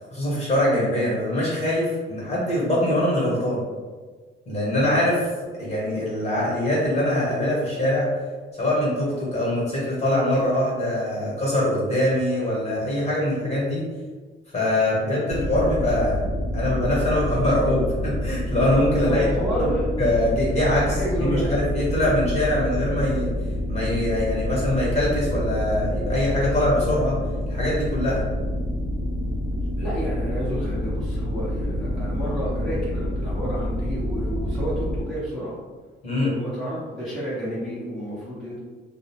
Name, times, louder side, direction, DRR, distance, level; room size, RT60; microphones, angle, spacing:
voice 1, 0.1-3.6 4.5-5.3 5.6-8.1 8.6-13.9 14.5-16.2 16.5-19.3 19.6-19.7 20.0-23.3 23.7-27.2 27.5-28.2 36.0-36.3, left 1 dB, 35° left, -6 dB, 1.3 m, -23 dB
sound 1, 15.3-35.0, left 1 dB, 75° right, 0.6 m, -27 dB
voice 2, 18.9-19.9 20.6-21.5 29.8-35.6 36.1-38.6, equal, ahead, -10 dB, 0.9 m, -30 dB
2.6 x 2.0 x 2.8 m, 1.4 s
cardioid pair, 90°, 20 cm